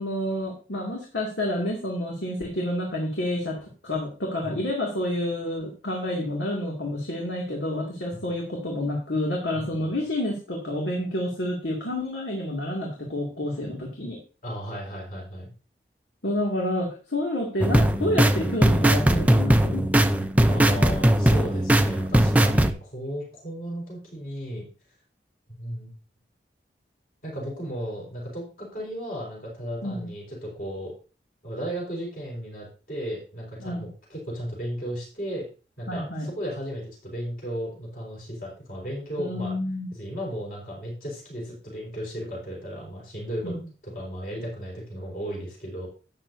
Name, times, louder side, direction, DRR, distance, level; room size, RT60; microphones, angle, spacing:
voice 1, 0.0-14.2 16.2-20.1 29.8-30.1 33.6-33.8 35.9-36.3 39.2-39.9 43.4-43.6, left 1 dB, 80° left, -1 dB, 2.3 m, -29 dB
voice 2, 14.4-15.5 20.5-24.7 25.5-25.9 27.2-30.9 31.4-35.4 35.8-39.5 39.9-43.5 43.8-45.9, equal, 50° left, -4 dB, 4.4 m, -35 dB
sound 1, 17.6-22.7, right 1 dB, 10° right, 0.5 m, -20 dB
12.0 x 9.0 x 2.7 m, 0.35 s
head